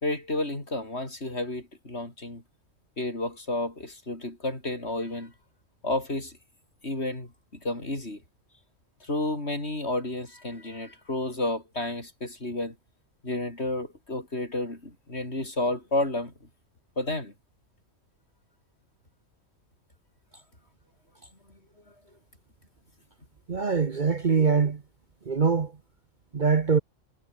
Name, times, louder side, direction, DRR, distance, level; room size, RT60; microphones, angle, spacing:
voice 1, 0.0-2.4 3.0-5.3 5.8-6.3 6.8-7.3 7.6-8.2 9.0-12.7 13.2-16.3 17.0-17.3, left 2 dB, 55° left, 5.7 m, -31 dB
voice 2, 23.5-24.8 25.3-25.7 26.3-26.8, right 5 dB, 40° right, 1.0 m, -23 dB
omnidirectional pair, 1.3 m